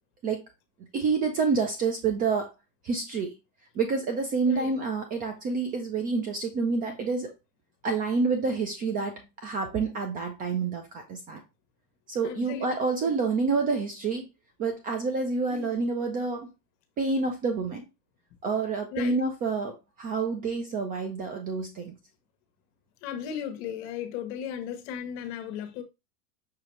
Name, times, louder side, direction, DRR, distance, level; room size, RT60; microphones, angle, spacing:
voice 1, 0.9-2.5 2.8-3.3 3.7-7.3 7.8-11.4 12.1-14.3 14.6-16.5 17.0-17.8 18.4-22.0, right 4 dB, 20° right, 0.4 m, -28 dB
voice 2, 12.2-12.7 13.0-13.1 15.5-15.8 18.9-19.2 23.0-25.8, left 8 dB, 50° left, 1.0 m, -36 dB
6.0 x 2.8 x 3.1 m
hypercardioid pair, 120°, 48 cm